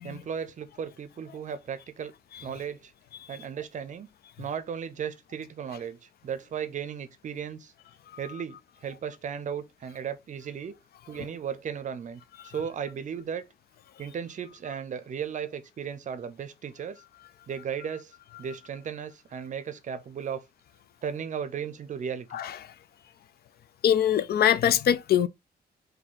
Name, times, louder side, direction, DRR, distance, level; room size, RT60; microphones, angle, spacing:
voice 1, 0.0-2.1 2.4-2.9 3.3-4.1 4.4-6.0 6.2-7.7 8.2-10.7 11.1-13.4 14.0-17.0 17.5-18.1 18.4-20.4 21.0-22.3, right 7 dB, 45° right, 0.6 m, -35 dB
voice 2, 23.8-25.3, left 10 dB, 65° left, 0.4 m, -22 dB
4.3 x 2.7 x 3.8 m
wide cardioid pair, 160°, 17 cm